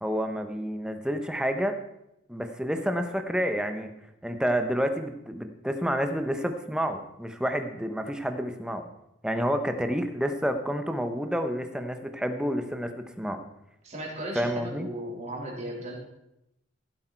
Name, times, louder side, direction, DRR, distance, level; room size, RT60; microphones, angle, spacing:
voice 1, 0.0-1.8 2.3-3.9 4.2-8.9 9.2-13.4 14.3-14.9, equal, 5° right, 7 dB, 0.9 m, -29 dB
voice 2, 13.8-15.9, right 1 dB, 35° right, -2 dB, 3.5 m, -36 dB
15.5 x 8.0 x 4.6 m, 0.86 s
head